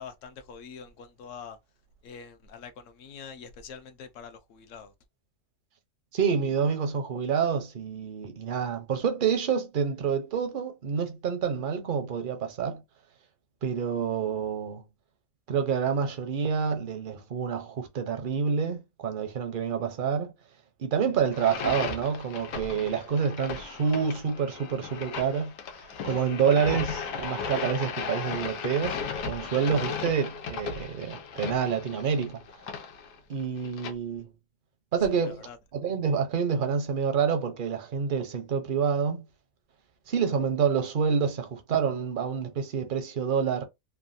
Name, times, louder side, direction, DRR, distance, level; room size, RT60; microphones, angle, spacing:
voice 1, 0.0-1.6 2.0-4.9 35.2-35.6, left 6 dB, 65° left, 0.8 m, -45 dB
voice 2, 6.1-12.8 13.6-14.8 15.5-20.3 20.8-25.5 26.0-32.4 33.3-34.3 34.9-39.2 40.1-43.7, right 6 dB, 55° right, 0.5 m, -28 dB
sound 1, 21.3-33.9, left 6 dB, 85° left, 1.3 m, -36 dB
3.3 x 2.2 x 2.5 m
omnidirectional pair, 1.6 m